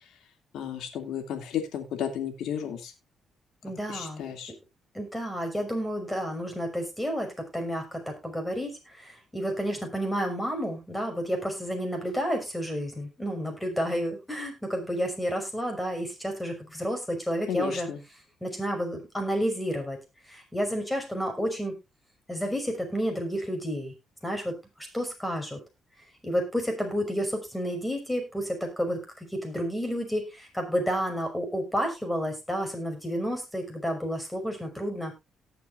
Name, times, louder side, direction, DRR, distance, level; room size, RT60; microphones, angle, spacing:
voice 1, 0.5-2.9 3.9-4.5 17.5-18.0, left 9 dB, 80° left, 6 dB, 2.7 m, -33 dB
voice 2, 3.6-4.2 4.9-17.9 18.4-20.0 20.3-21.7 22.3-23.9 24.2-25.6 26.2-35.1, equal, 5° left, 4 dB, 5.9 m, -30 dB
18.5 x 7.2 x 2.6 m, 0.24 s
cardioid pair, 90°, 0 cm